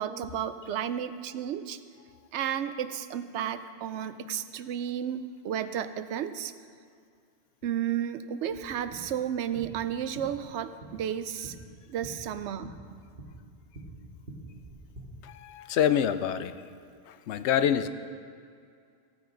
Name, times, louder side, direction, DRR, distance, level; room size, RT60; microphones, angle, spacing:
voice 1, 0.0-1.8 2.3-6.5 7.6-11.6 11.9-12.8, right 9 dB, 80° right, 12 dB, 0.9 m, -32 dB
running hard ground, 8.5-15.0, right 1 dB, 55° right, 2.0 m, -47 dB
voice 2, 15.2-16.5 17.1-17.9, left 9 dB, 80° left, 12 dB, 0.8 m, -26 dB
15.5 x 9.4 x 3.8 m, 2.3 s
omnidirectional pair, 1.1 m